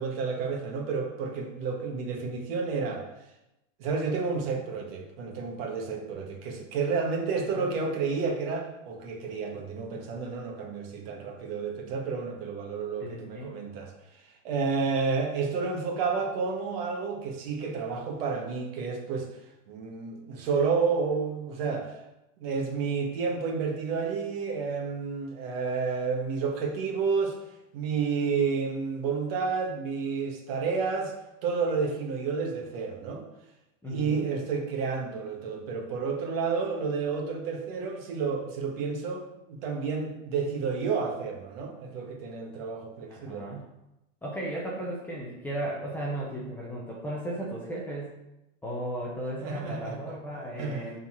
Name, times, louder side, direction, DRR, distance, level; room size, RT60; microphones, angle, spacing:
voice 1, 0.0-3.1 3.8-13.9 14.4-19.3 19.7-21.9 22.4-27.4 27.7-31.1 31.4-33.2 33.9-43.5 49.4-50.0 50.6-50.9, right 5 dB, 45° right, 1 dB, 1.7 m, -30 dB
voice 2, 13.0-13.6 33.8-34.3 43.1-43.7 44.2-48.1 48.6-51.0, right 1 dB, 5° left, -5 dB, 0.7 m, -35 dB
7.3 x 4.1 x 6.0 m, 0.92 s
supercardioid pair, 160°, 40 cm